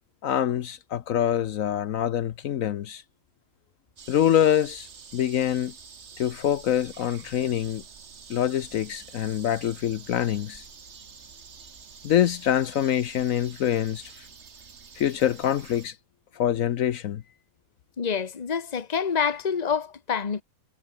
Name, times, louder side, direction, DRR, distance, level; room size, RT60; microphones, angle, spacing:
voice 1, 0.2-3.0 4.1-4.9 5.1-5.7 6.2-7.8 8.3-10.6 12.0-14.1 15.0-16.0 16.3-17.2, left 10 dB, 70° left, 1.1 m, -25 dB
sound 1, 4.0-15.9, right 6 dB, 50° right, 1.7 m, -47 dB
voice 2, 18.0-20.4, left 6 dB, 30° left, 1.2 m, -27 dB
omnidirectional pair, 1.5 m